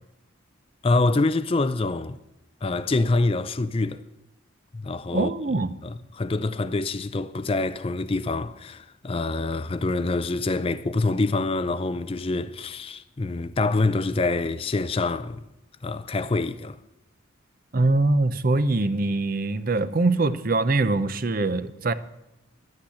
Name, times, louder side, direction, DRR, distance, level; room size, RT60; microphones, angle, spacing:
voice 1, 0.8-2.2 2.6-4.0 4.7-5.3 5.8-15.5 15.8-16.8, left 3 dB, 25° left, 0.4 m, -26 dB
voice 2, 5.1-5.8 17.7-21.9, right 2 dB, 45° right, 0.6 m, -23 dB
11.5 x 8.9 x 8.4 m
head